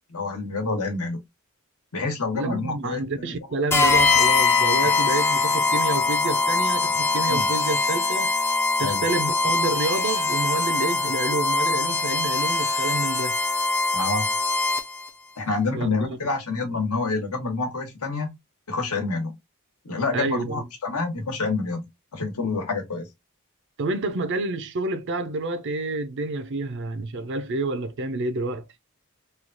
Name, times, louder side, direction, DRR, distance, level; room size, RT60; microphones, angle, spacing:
voice 1, 0.1-1.2 1.9-3.3 7.3-7.5 8.8-9.0 13.9-14.3 15.4-18.3 18.7-19.3 19.8-23.1, left 3 dB, 90° left, 1.2 m, -28 dB
voice 2, 2.3-8.3 8.8-13.3 15.7-16.2 20.1-20.7 23.8-28.7, right 2 dB, 55° right, 0.5 m, -28 dB
sound 1, 3.7-15.1, left 3 dB, 10° left, 0.3 m, -22 dB
3.1 x 2.3 x 2.5 m
head